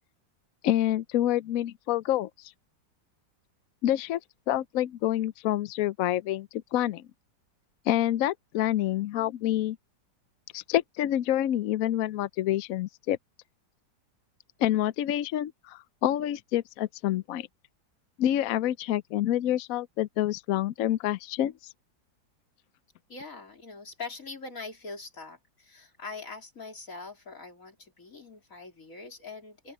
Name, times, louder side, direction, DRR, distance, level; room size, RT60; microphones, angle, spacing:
voice 1, 0.6-2.5 3.8-4.2 4.5-7.0 7.9-9.8 10.5-13.2 14.6-17.5 18.2-21.5, left 12 dB, 75° left, 0.8 m, -27 dB
voice 2, 23.1-29.7, left 4 dB, 45° left, 3.9 m, -43 dB
open air
omnidirectional pair, 2.0 m